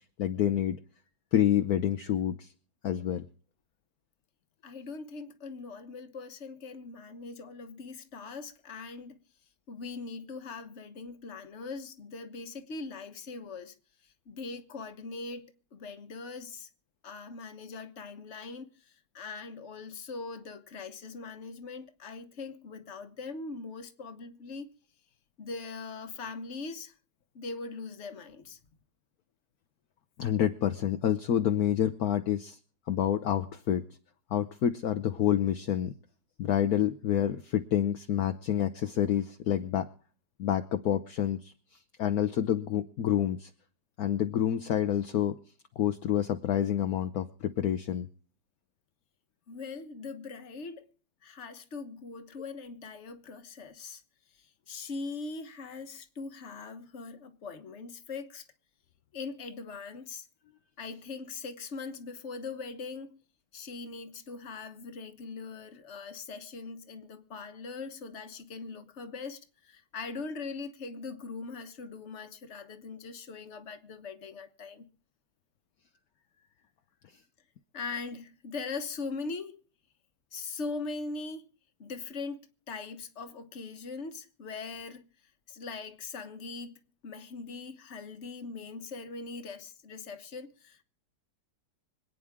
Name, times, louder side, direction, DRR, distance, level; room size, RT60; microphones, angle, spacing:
voice 1, 0.2-0.8 1.3-2.5 2.8-3.3 30.2-32.6 32.9-33.8 34.3-35.9 36.4-39.8 40.4-41.5 42.0-43.5 44.0-45.3 45.8-48.1, left 10 dB, 65° left, 1.2 m, -28 dB
voice 2, 4.6-9.2 9.7-13.7 14.0-16.7 17.0-24.7 25.4-26.9 27.3-28.6 49.5-50.9 51.2-54.0 54.3-58.5 59.1-60.3 60.8-63.2 63.5-74.9 77.7-79.6 80.3-81.5 81.8-85.1 85.5-90.8, left 4 dB, 45° left, 1.4 m, -41 dB
26.0 x 9.3 x 3.6 m
omnidirectional pair, 1.9 m